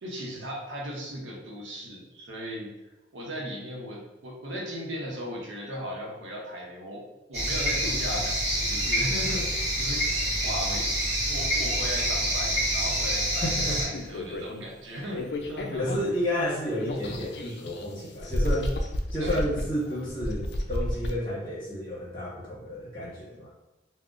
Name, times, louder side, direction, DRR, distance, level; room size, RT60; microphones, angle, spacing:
voice 1, 0.0-2.7 3.1-7.0 7.3-10.0 10.4-10.9 11.3-13.5 13.8-15.2 15.5-15.9 19.2-19.4, equal, 90° right, -2 dB, 0.7 m, -36 dB
sound 1, 7.3-13.8, right 1 dB, 35° right, 0.9 m, -27 dB
voice 2, 13.4-14.1 15.8-18.8 19.1-23.5, equal, 30° left, -6 dB, 0.8 m, -31 dB
sound 2, 13.9-14.7 15.1-16.3 16.8-17.9 18.2-21.1, left 1 dB, 65° left, 0.4 m, -32 dB
3.6 x 2.1 x 2.4 m, 1.0 s
head